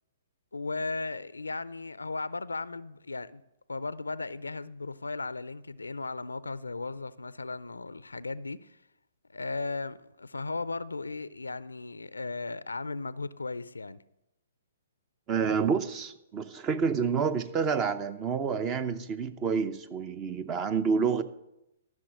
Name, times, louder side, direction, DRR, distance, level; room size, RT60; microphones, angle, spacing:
voice 1, 0.5-3.4 3.7-8.7 9.3-14.0, left 3 dB, 90° left, 0.4 m, -36 dB
voice 2, 15.3-21.2, right 6 dB, 25° right, 0.7 m, -28 dB
14.0 x 6.3 x 6.2 m
hypercardioid pair, 125°, 0 cm